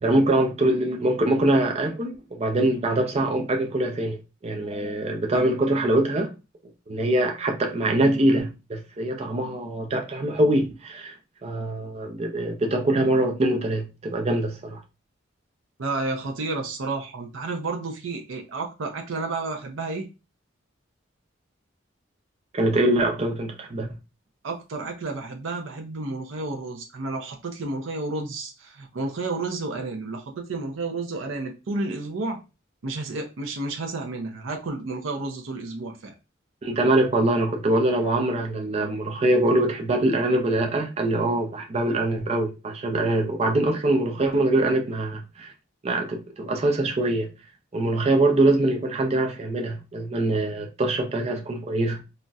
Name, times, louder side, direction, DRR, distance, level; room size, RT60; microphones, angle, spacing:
voice 1, 0.0-6.3 6.9-11.1 11.4-14.8 22.5-23.9 36.6-45.5 45.8-47.3 47.7-52.0, right 1 dB, 30° right, 0.4 m, -23 dB
voice 2, 15.8-20.1 24.4-32.4 32.8-36.1, right 3 dB, 75° right, 0.6 m, -31 dB
3.9 x 2.1 x 2.3 m
head